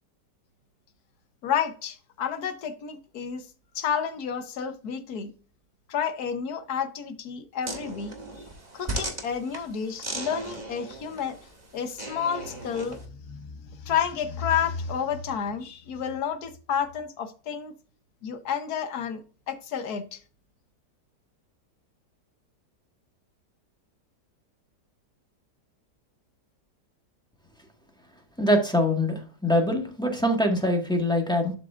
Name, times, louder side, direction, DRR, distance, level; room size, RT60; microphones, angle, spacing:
voice 1, 1.4-3.5 3.7-5.3 5.9-8.1 8.7-11.4 11.7-17.7 18.2-20.2, left 7 dB, 70° left, 1.5 m, -30 dB
sound 1, 7.6-13.0, right 2 dB, 25° right, 1.8 m, -37 dB
voice 2, 28.4-31.5, left 1 dB, 5° left, 1.5 m, -23 dB
12.0 x 5.0 x 2.5 m
omnidirectional pair, 1.8 m